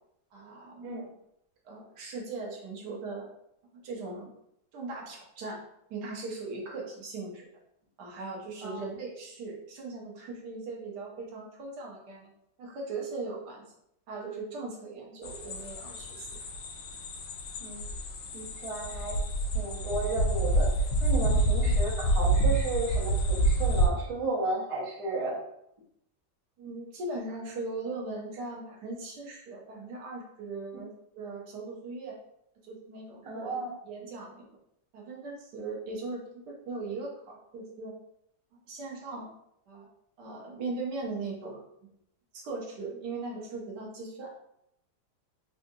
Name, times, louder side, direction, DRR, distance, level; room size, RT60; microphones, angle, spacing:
voice 1, 0.3-0.9 1.6-3.3 3.8-4.3 4.7-5.6 5.9-7.5 8.0-12.3 12.6-13.6 14.1-16.3 26.6-32.2 32.6-34.5 34.9-38.0 38.7-39.3 39.7-39.9 40.2-41.6 42.3-44.3, right 3 dB, 70° right, -1 dB, 1.3 m, -39 dB
sound 1, 15.2-23.9, right 1 dB, 80° left, 1.2 m, -28 dB
voice 2, 18.3-19.2 19.5-20.7 21.0-25.4 33.2-33.7, right 2 dB, 55° right, -4 dB, 0.3 m, -33 dB
3.5 x 2.4 x 2.6 m, 0.76 s
omnidirectional pair, 1.9 m